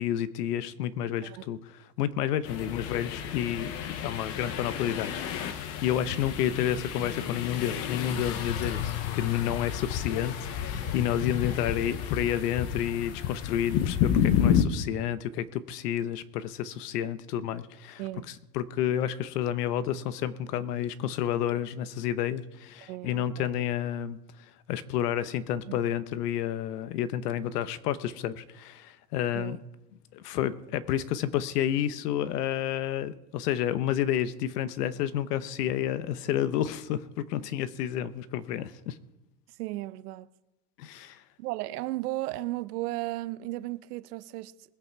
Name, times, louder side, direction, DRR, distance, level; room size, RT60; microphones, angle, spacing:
voice 1, 0.0-18.0 18.3-24.2 24.7-29.6 30.1-39.0 40.8-41.2, left 10 dB, 80° left, 1.0 m, -30 dB
sound 1, 2.5-14.6, left 9 dB, 30° left, 0.8 m, -30 dB
voice 2, 18.0-18.3 22.9-23.5 25.7-25.8 29.3-29.6 39.6-40.3 41.4-44.5, right 17 dB, 75° right, 0.7 m, -35 dB
21.0 x 8.3 x 4.6 m
supercardioid pair, 175°, 46 cm